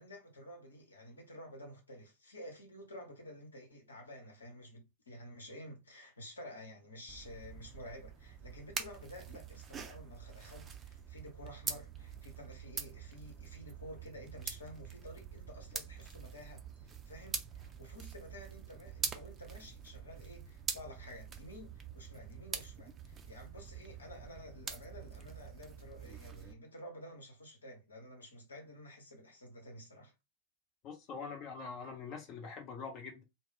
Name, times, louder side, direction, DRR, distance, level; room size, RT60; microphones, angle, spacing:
voice 1, 0.0-30.1, left 1 dB, 75° left, 0.9 m, -51 dB
sound 1, 7.1-26.5, right 6 dB, 25° right, 0.5 m, -45 dB
voice 2, 30.8-33.2, left 5 dB, 35° left, 0.8 m, -44 dB
2.3 x 2.0 x 3.8 m
figure-of-eight pair, 90°, 0 cm